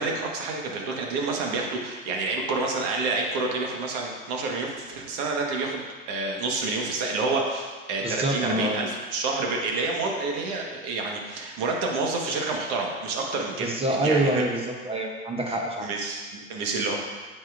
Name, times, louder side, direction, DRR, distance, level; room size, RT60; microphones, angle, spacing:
voice 1, 0.0-13.7 14.0-14.4 15.5-15.6 15.8-17.0, right 3 dB, 60° right, 1 dB, 1.5 m, -28 dB
voice 2, 8.0-8.9 13.6-15.9, right 1 dB, 15° right, 1 dB, 0.7 m, -26 dB
8.9 x 5.5 x 2.6 m, 1.4 s
hypercardioid pair, 100°, 40 cm